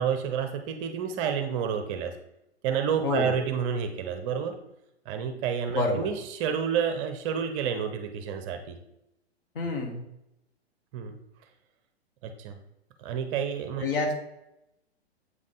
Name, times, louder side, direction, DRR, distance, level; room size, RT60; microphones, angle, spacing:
voice 1, 0.0-2.1 2.6-4.6 5.1-8.8 10.9-11.1 12.2-12.6 13.0-13.8, right 7 dB, 30° right, 6 dB, 0.6 m, -29 dB
voice 2, 3.0-3.3 5.7-6.1 9.5-10.0 13.8-14.2, left 3 dB, 55° left, 3 dB, 1.5 m, -27 dB
8.0 x 3.6 x 3.8 m, 0.86 s
figure-of-eight pair, 110°, 33 cm